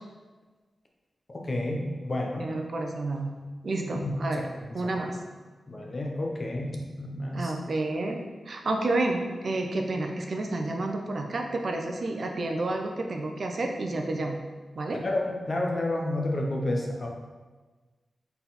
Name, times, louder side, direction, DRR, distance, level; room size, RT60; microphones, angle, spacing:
voice 1, 1.5-2.5 3.7-4.1 5.7-6.7 7.0-7.5 15.0-17.1, left 1 dB, 35° left, 0 dB, 1.1 m, -30 dB
voice 2, 2.4-3.3 3.6-5.2 7.3-8.2 8.5-14.4 14.7-15.0, right 2 dB, 50° right, 3 dB, 0.7 m, -30 dB
7.8 x 4.1 x 4.2 m, 1.3 s
wide cardioid pair, 145°, 0 cm